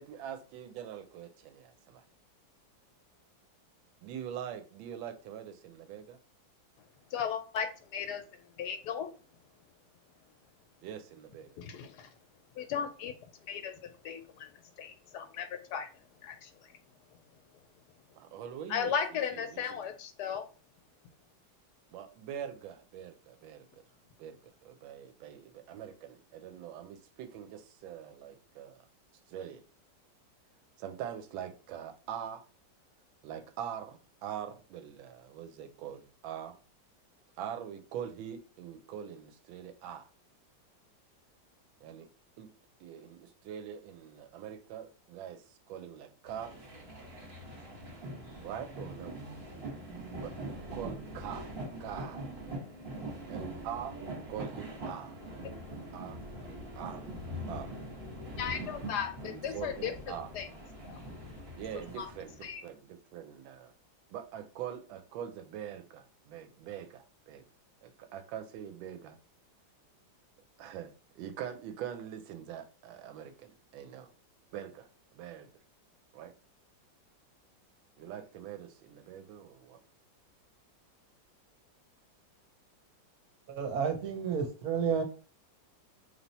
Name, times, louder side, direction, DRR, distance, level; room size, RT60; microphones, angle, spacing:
voice 1, 0.0-2.0 4.0-6.2 10.8-11.6 18.2-19.9 21.9-23.8 24.2-28.9 29.3-29.6 30.8-32.4 33.2-36.5 37.4-40.1 41.8-42.1 42.4-42.5 42.8-46.5 48.4-49.2 50.2-51.5 51.8-52.2 53.3-55.2 55.7-56.2 56.4-57.8 59.3-60.3 61.6-63.7 64.1-67.4 67.8-69.2 70.6-74.1 74.5-74.9 75.1-75.5 76.1-76.3 78.0-79.8, right 9 dB, 90° right, 1.3 m, -43 dB
voice 2, 7.1-8.2 8.6-9.1 11.6-12.1 12.6-13.1 13.5-13.7 14.0-14.5 14.8-15.9 16.2-16.5 18.7-20.4 58.4-59.9 60.3-60.5 60.9-61.0 62.0-62.1 62.4-62.6, left 7 dB, 75° left, 1.0 m, -35 dB
sound 1, 46.3-62.5, right 1 dB, 35° right, 1.1 m, -43 dB
voice 3, 83.5-85.0, right 6 dB, 65° right, 1.0 m, -31 dB
3.3 x 2.7 x 4.1 m
omnidirectional pair, 2.1 m